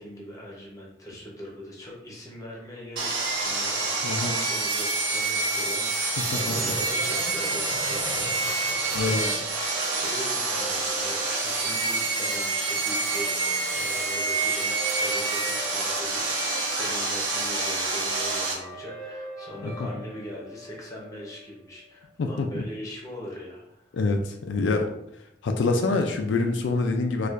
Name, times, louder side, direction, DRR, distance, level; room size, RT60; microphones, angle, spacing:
voice 1, 0.0-9.4 9.7-16.3 16.6-24.0, equal, 20° left, -2 dB, 0.8 m, -41 dB
Sawing, 3.0-18.5, right 3 dB, 80° right, 1.0 m, -27 dB
voice 2, 4.0-4.4 6.5-6.7 8.9-9.2 19.6-19.7 22.2-22.5 23.9-24.9 25.4-27.3, left 3 dB, 70° left, 4 dB, 0.3 m, -25 dB
sound 1, 6.4-10.1, right 2 dB, 30° right, 0.3 m, -39 dB
Guitar, 7.4-22.0, equal, 55° right, 0.7 m, -42 dB
4.4 x 2.4 x 2.4 m, 0.81 s
head